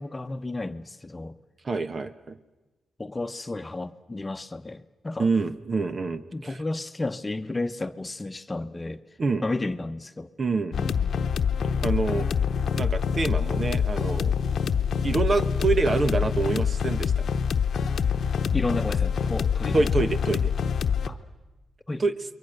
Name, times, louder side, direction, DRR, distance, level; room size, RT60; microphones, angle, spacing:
voice 1, 0.0-1.4 3.0-5.3 6.3-9.0 9.4-10.3 10.8-11.2 18.5-19.9 21.1-21.2 21.9-22.0, left 2 dB, 25° left, 1.0 m, -32 dB
voice 2, 1.6-2.4 5.2-6.6 9.2-9.5 10.4-10.8 11.8-12.3 12.8-14.3 15.0-17.3 19.7-20.5 22.0-22.1, right 3 dB, 45° right, 1.2 m, -26 dB
sound 1, 10.7-21.1, left 7 dB, 70° left, 1.0 m, -25 dB
28.5 x 22.5 x 6.6 m
cardioid pair, 60°, 0 cm